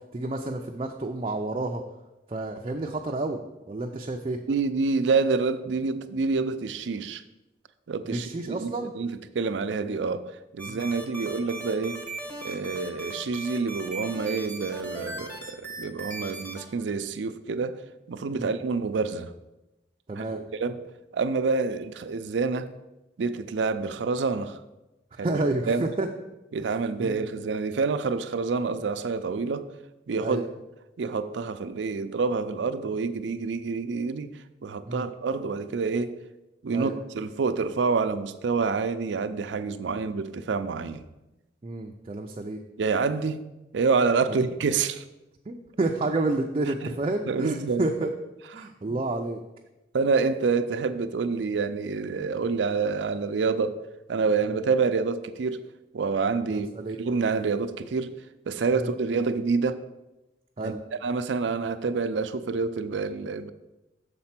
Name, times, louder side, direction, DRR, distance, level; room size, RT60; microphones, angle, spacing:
voice 1, 0.1-1.8 2.3-3.4 3.7-4.4 8.1-8.9 10.7-10.9 18.3-18.5 20.1-20.4 25.2-26.1 27.0-27.3 30.2-30.4 34.9-35.1 36.7-36.9 41.6-42.6 44.3-44.4 45.5-48.1 48.5-49.4 56.5-57.0 58.7-58.9 60.6-60.8, right 2 dB, 35° right, 0.4 m, -30 dB
voice 2, 4.5-7.2 7.9-10.2 10.5-12.0 12.4-17.8 18.1-19.3 20.2-20.8 21.1-22.7 23.2-24.6 25.2-25.4 25.7-25.9 26.5-29.7 30.1-30.4 31.0-34.3 34.6-36.1 36.6-41.0 42.8-43.4 43.7-45.0 46.8-47.0 47.3-47.9 48.6-49.0 49.9-53.8 54.1-55.6 55.9-56.7 57.0-58.2 58.5-59.8 60.6-60.7 61.0-63.5, right 4 dB, 90° right, 0.5 m, -27 dB
sound 1, 10.6-16.6, right 2 dB, 10° left, 1.1 m, -38 dB
6.7 x 4.3 x 5.8 m
head